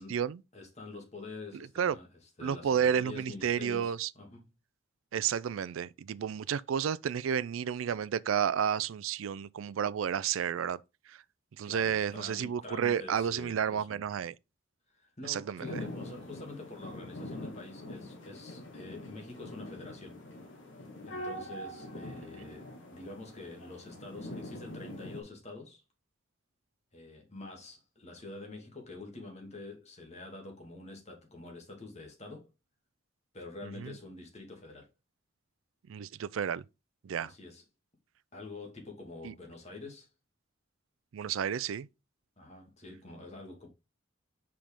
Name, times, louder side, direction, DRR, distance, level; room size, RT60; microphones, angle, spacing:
voice 1, 0.0-0.4 1.8-2.0 2.4-4.1 5.1-10.8 11.1-11.2 11.6-14.3 15.2-15.7 33.6-33.9 35.9-36.6 37.0-37.3 39.2-39.3 41.1-41.9, right 8 dB, 85° right, 0.4 m, -31 dB
voice 2, 0.5-2.1 2.4-4.5 11.6-14.0 14.9-20.2 21.0-25.8 26.9-32.5 33.3-34.9 37.2-37.6 38.3-40.1 42.4-43.7, left 3 dB, 35° left, 2.3 m, -46 dB
sound 1, 15.6-25.2, left 1 dB, 70° left, 1.9 m, -44 dB
5.8 x 5.0 x 3.5 m
head